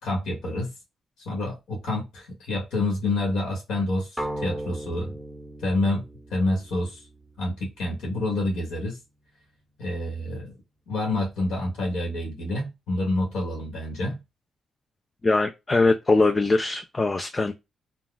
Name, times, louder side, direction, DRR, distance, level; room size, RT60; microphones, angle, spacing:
voice 1, 0.0-0.7 1.2-5.1 5.6-6.0 6.3-7.1 7.4-9.0 9.8-10.5 10.9-14.2, left 2 dB, 85° left, 1.2 m, -28 dB
sound 1, 4.2-8.1, right 1 dB, 5° right, 0.7 m, -37 dB
voice 2, 15.2-17.5, left 3 dB, 25° left, 0.3 m, -22 dB
2.3 x 2.2 x 3.8 m
cardioid pair, 80°, 0 cm